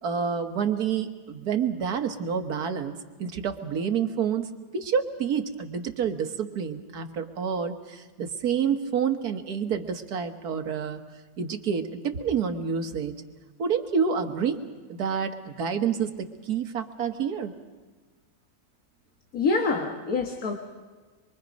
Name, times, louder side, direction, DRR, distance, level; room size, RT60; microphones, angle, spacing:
voice 1, 0.0-4.5 4.7-11.0 11.4-13.1 13.6-14.6 14.9-17.5, right 7 dB, 90° right, 6 dB, 1.8 m, -28 dB
voice 2, 19.3-20.5, left 4 dB, 70° left, 3 dB, 1.9 m, -26 dB
25.5 x 23.5 x 5.2 m, 1.3 s
omnidirectional pair, 1.6 m